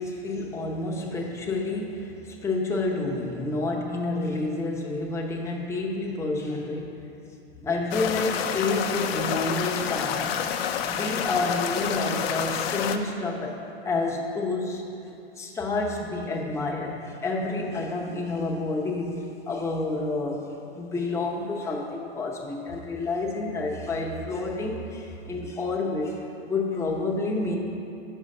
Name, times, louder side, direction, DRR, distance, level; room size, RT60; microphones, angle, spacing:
voice 1, 0.0-6.9 7.6-10.3 10.9-13.6 13.8-14.8 15.4-20.5 20.7-27.6, left 2 dB, 10° left, -3 dB, 0.8 m, -29 dB
sound 1, 7.9-13.0, left 8 dB, 65° left, 0.6 m, -28 dB
5.6 x 5.4 x 6.5 m, 2.7 s
hypercardioid pair, 115°, 32 cm